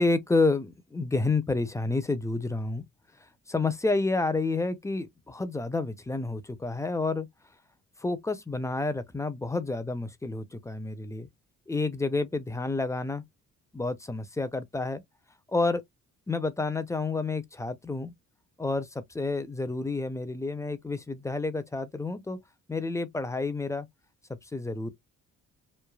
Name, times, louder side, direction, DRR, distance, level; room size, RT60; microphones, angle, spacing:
voice 1, 0.0-2.8 3.5-7.3 8.0-11.3 11.7-13.2 13.7-15.0 15.5-15.8 16.3-18.1 18.6-22.4 22.7-23.9 24.5-24.9, left 3 dB, 10° left, 0.5 m, -29 dB
3.2 x 2.1 x 2.3 m
cardioid pair, 90°, 30 cm